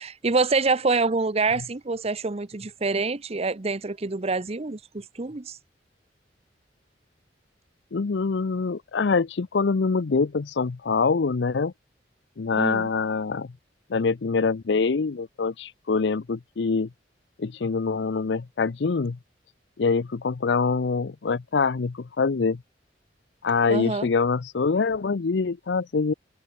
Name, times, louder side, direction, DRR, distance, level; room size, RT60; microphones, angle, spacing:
voice 1, 0.0-5.6 12.6-12.9 23.7-24.1, right 3 dB, 35° right, 0.8 m, -26 dB
voice 2, 7.9-11.7 12.4-13.5 13.9-16.9 17.4-19.2 19.8-22.6 23.4-26.1, left 4 dB, 70° left, 0.5 m, -24 dB
head